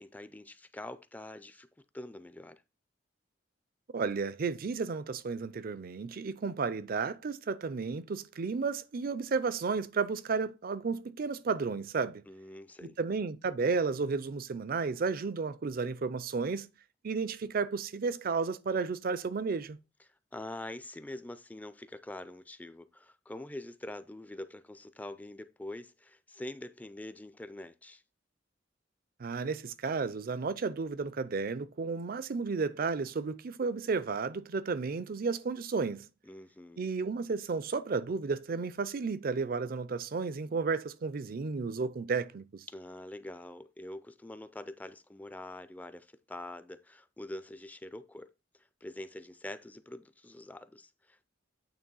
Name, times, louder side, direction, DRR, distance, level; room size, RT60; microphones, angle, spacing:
voice 1, 0.0-1.7 1.9-2.6 12.3-13.0 20.3-28.0 36.2-36.9 42.7-48.3 48.6-51.3, left 1 dB, 10° left, 0.4 m, -45 dB
voice 2, 3.9-12.2 12.8-16.7 17.0-19.8 29.2-36.1 36.8-42.6, right 4 dB, 50° right, 0.5 m, -33 dB
8.8 x 3.0 x 5.4 m
head